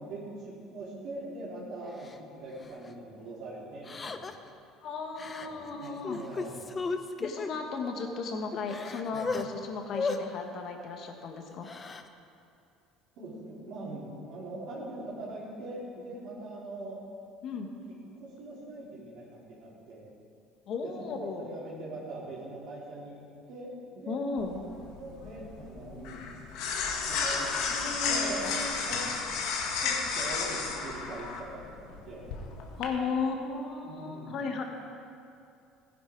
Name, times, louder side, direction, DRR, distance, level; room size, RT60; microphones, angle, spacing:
voice 1, 0.0-4.3 5.4-6.6 9.1-9.3 13.2-17.0 17.9-20.1 20.8-23.2 23.5-24.2 25.0-26.3 27.1-28.5 28.9-29.1 29.7-32.2 33.8-34.4, right 2 dB, 65° right, -7 dB, 3.9 m, -42 dB
Crying sobbing, 2.0-2.2 2.6-2.9 3.8-4.5 5.2-5.5 5.8-7.5 8.1-8.2 8.5-9.4 9.9-10.2 11.5-12.1, left 4 dB, 25° left, 0.7 m, -35 dB
voice 2, 4.8-6.2 7.2-11.7 17.4-17.7 20.7-21.5 24.1-24.6 27.7-28.8 32.8-34.6, left 4 dB, 55° left, 3 dB, 1.6 m, -35 dB
sound 1, 24.4-32.8, left 5 dB, 75° left, 1.6 m, -33 dB
15.5 x 10.5 x 4.7 m, 2.5 s
supercardioid pair, 105°, 0 cm